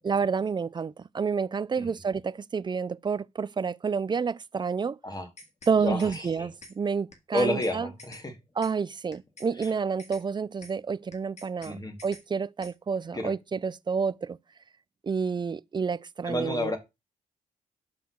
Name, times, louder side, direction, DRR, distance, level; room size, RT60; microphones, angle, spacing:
voice 1, 0.0-5.0 5.7-7.9 8.6-14.4 15.0-16.8, right 5 dB, 30° right, 0.4 m, -29 dB
sound 1, 5.1-5.7 6.0-6.2 6.6-6.7 7.1-7.7 8.0-8.2 8.6-8.7 9.1-9.7 10.0-10.2 10.6-10.7 11.1-11.7 12.0-12.2 12.6-12.7, left 2 dB, 45° left, 2.2 m, -48 dB
voice 2, 5.8-6.5 7.3-8.4 9.6-9.7 11.6-12.0 13.1-13.3 16.2-16.8, left 1 dB, 25° left, 2.2 m, -30 dB
5.7 x 3.8 x 5.8 m
supercardioid pair, 60°, 16 cm